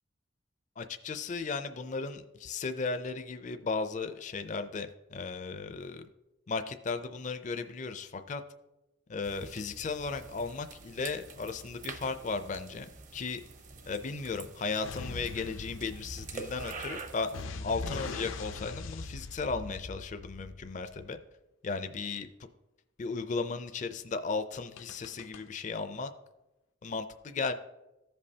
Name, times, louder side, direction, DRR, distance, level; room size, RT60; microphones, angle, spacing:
voice 1, 0.8-6.1 6.5-8.4 9.1-13.4 13.9-21.2 21.6-22.5 23.0-26.1 26.8-27.5, left 4 dB, 40° left, 9 dB, 0.4 m, -35 dB
sound 1, 9.2-17.4, right 4 dB, 40° right, 0.7 m, -46 dB
sound 2, 14.8-21.2 24.8-25.4, left 3 dB, 85° left, 0.6 m, -42 dB
15.0 x 5.3 x 2.8 m, 0.98 s
head